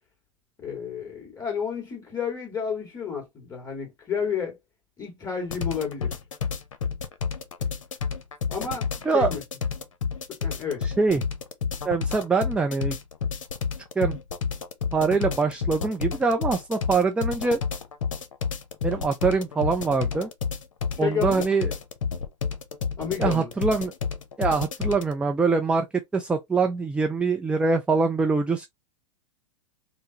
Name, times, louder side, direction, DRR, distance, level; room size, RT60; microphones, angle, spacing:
voice 1, 0.6-4.6 5.0-6.2 8.5-9.4 10.4-10.9 20.9-21.4 23.0-23.5, left 6 dB, 20° left, 2.2 m, -31 dB
sound 1, 5.5-25.1, left 6 dB, 75° left, 0.7 m, -29 dB
voice 2, 10.8-11.2 11.8-13.0 14.0-14.2 14.9-17.6 18.8-20.3 21.0-21.7 23.2-23.9 24.4-25.9 26.1-28.7, right 4 dB, 5° right, 0.4 m, -24 dB
4.3 x 2.0 x 2.9 m
hypercardioid pair, 100°, 17 cm